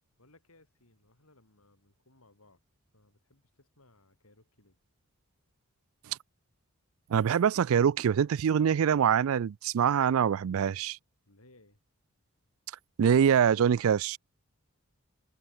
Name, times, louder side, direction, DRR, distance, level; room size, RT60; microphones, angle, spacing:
voice 1, 0.2-2.6 2.9-4.8 11.3-11.8, left 2 dB, 75° left, 5.6 m, -62 dB
voice 2, 7.1-11.0 13.0-14.2, right 8 dB, 70° right, 0.3 m, -24 dB
head